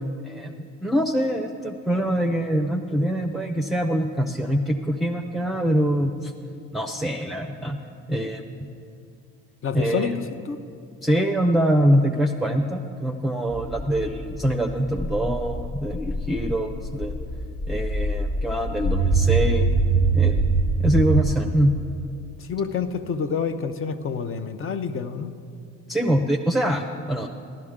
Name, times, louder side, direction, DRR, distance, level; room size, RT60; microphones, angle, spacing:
voice 1, 0.2-6.3 6.7-7.8 8.1-8.4 9.7-10.2 11.0-17.1 17.7-19.7 20.1-20.4 20.8-21.7 25.9-27.3, equal, ahead, 2 dB, 0.6 m, -24 dB
voice 2, 9.6-10.6 22.4-25.3, left 6 dB, 45° left, 10 dB, 0.7 m, -28 dB
sound 1, 13.5-21.3, right 3 dB, 65° left, 1.7 m, -24 dB
14.5 x 12.0 x 3.7 m, 2.5 s
supercardioid pair, 75°, 29 cm